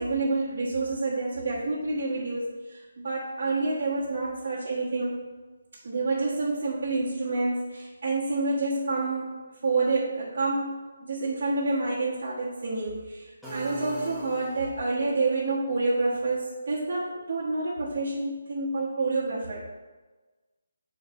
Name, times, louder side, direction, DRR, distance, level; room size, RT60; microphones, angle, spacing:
voice 1, 0.0-5.1 5.8-9.3 9.6-10.7 11.0-19.6, right 3 dB, 50° right, -8 dB, 1.4 m, -28 dB
sound 1, 13.4-15.0, equal, ahead, 1.2 m, -38 dB
6.5 x 4.3 x 4.2 m, 1.3 s
figure-of-eight pair, 155°, 0 cm